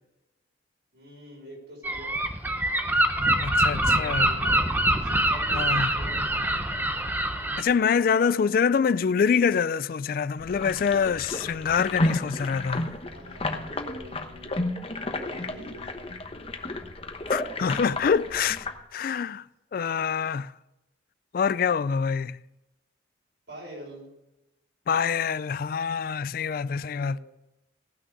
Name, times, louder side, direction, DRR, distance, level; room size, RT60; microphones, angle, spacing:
voice 1, 0.9-2.2 3.2-4.6 5.0-6.4 7.7-8.0 8.4-8.5 11.4-11.7 13.1-14.7 15.0-16.2 17.6-17.8 23.5-24.1 26.8-27.2, equal, 75° right, 5.7 m, -46 dB
Gull seagull, 1.8-7.6, right 1 dB, 10° right, 0.8 m, -24 dB
voice 2, 3.4-4.3 5.5-5.9 7.6-12.9 17.3-18.7 18.9-19.4 19.7-20.5 21.3-22.4 24.9-27.2, left 6 dB, 50° left, 0.3 m, -25 dB
sound 1, 10.4-18.8, left 2 dB, 30° left, 1.0 m, -32 dB
18.0 x 6.3 x 6.6 m
head